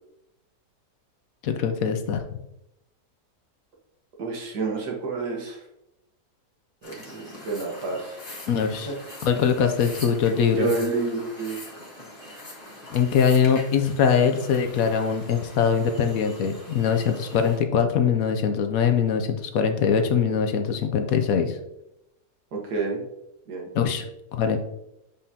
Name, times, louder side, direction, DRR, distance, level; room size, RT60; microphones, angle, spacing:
voice 1, 1.4-2.4 8.5-8.9 9.2-10.7 12.9-21.6 23.7-24.0 24.3-24.6, left 7 dB, 70° left, 6 dB, 1.0 m, -22 dB
voice 2, 4.2-5.6 6.8-8.2 8.9-9.0 10.4-11.6 22.5-23.0 23.5-23.7, right 3 dB, 80° right, -1 dB, 1.9 m, -29 dB
sound 1, 6.8-17.6, left 1 dB, 25° left, 1.5 m, -43 dB
7.4 x 5.1 x 2.8 m, 0.87 s
omnidirectional pair, 1.7 m